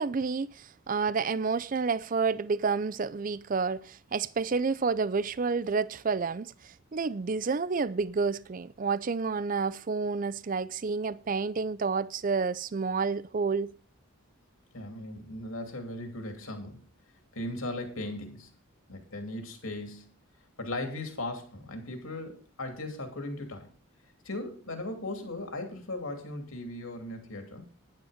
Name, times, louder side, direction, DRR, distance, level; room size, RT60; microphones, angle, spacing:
voice 1, 0.0-13.7, right 4 dB, 40° right, 0.4 m, -29 dB
voice 2, 14.7-16.8 17.3-18.5 18.9-20.1 20.6-23.7 24.2-27.6, left 1 dB, 70° left, 2.9 m, -37 dB
10.5 x 9.0 x 5.1 m
head